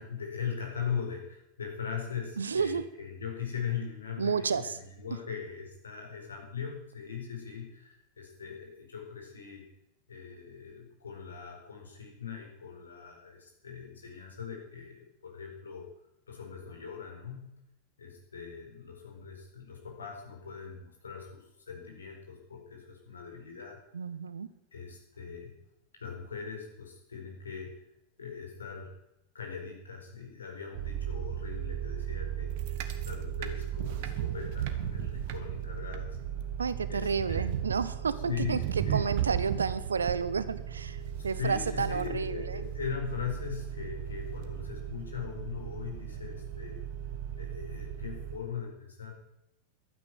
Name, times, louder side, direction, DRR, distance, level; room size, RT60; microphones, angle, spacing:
voice 1, 0.0-9.6 10.1-15.9 16.3-17.5 18.0-23.8 24.7-25.5 26.0-27.7 28.2-29.0 29.3-36.2 36.9-37.5 38.3-39.1 39.5-39.6 41.2-46.8 47.4-49.1, left 7 dB, 70° left, 1 dB, 4.6 m, -40 dB
voice 2, 2.4-2.8 4.2-4.8 23.9-24.5 36.6-38.6 38.9-42.6, right 5 dB, 70° right, 15 dB, 0.9 m, -31 dB
sound 1, 30.7-48.4, right 10 dB, 50° right, 1.5 m, -36 dB
12.5 x 9.7 x 9.4 m, 0.84 s
figure-of-eight pair, 90°, 0 cm